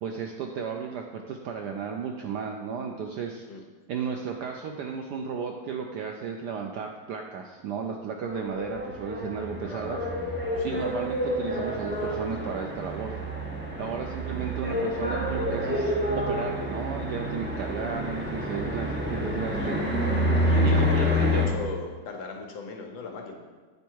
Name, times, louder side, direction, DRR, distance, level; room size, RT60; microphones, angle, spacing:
voice 1, 0.0-3.5 3.9-13.2 13.8-19.8 20.4-21.4, right 6 dB, 75° right, 2 dB, 0.9 m, -34 dB
sound 1, 8.3-21.5, equal, 15° right, 0.4 m, -28 dB
voice 2, 20.5-23.4, left 4 dB, 70° left, 2 dB, 1.5 m, -37 dB
8.2 x 4.6 x 4.5 m, 1.4 s
omnidirectional pair, 2.2 m